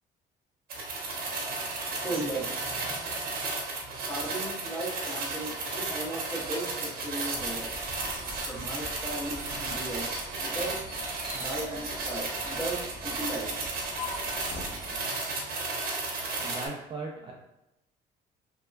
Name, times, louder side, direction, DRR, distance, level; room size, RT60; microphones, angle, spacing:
sound 1, 0.7-16.7, right 3 dB, 60° right, 0.9 m, -34 dB
voice 1, 1.1-1.5 1.9-3.2 4.1-7.7 8.4-10.9 11.1-13.6, right 1 dB, 15° left, -6 dB, 1.1 m, -37 dB
sound 2, 7.3-15.0, right 1 dB, 5° right, 0.9 m, -48 dB
sound 3, 8.1-9.7 10.1-14.8, left 4 dB, 65° left, 0.8 m, -45 dB
voice 2, 16.4-17.3, right 3 dB, 30° right, -2 dB, 0.4 m, -38 dB
2.9 x 2.2 x 2.2 m, 0.91 s
cardioid pair, 110°, 17 cm